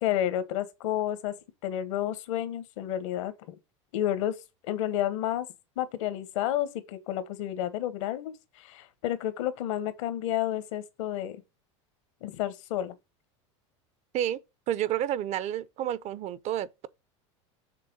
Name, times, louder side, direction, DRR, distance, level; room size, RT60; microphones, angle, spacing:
voice 1, 0.0-1.3 1.6-3.6 3.9-4.4 4.6-5.5 5.8-11.4 12.2-12.9, left 11 dB, 75° left, 1.2 m, -31 dB
voice 2, 14.7-16.9, right 11 dB, 45° right, 0.6 m, -30 dB
6.7 x 3.3 x 5.3 m
supercardioid pair, 105°, 16 cm